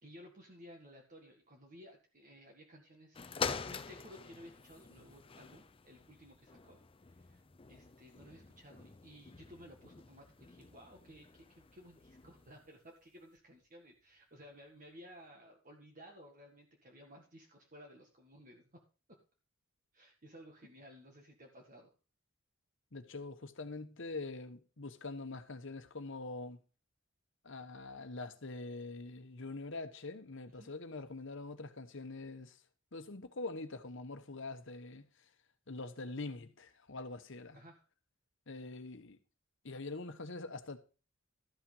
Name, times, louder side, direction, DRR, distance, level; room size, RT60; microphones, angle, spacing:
voice 1, 0.0-3.3 3.6-6.8 7.1-7.4 7.7-18.8 19.9-21.9 30.5-30.7 37.5-37.8, equal, 40° right, 1.8 m, -56 dB
sound 1, 3.1-12.7 13.4-13.5, left 5 dB, 25° left, 0.6 m, -46 dB
voice 2, 22.9-26.6 27.4-32.6 32.9-35.1 35.7-37.6 38.5-39.2 39.6-40.8, left 3 dB, 65° left, 1.2 m, -44 dB
13.0 x 5.8 x 5.5 m
head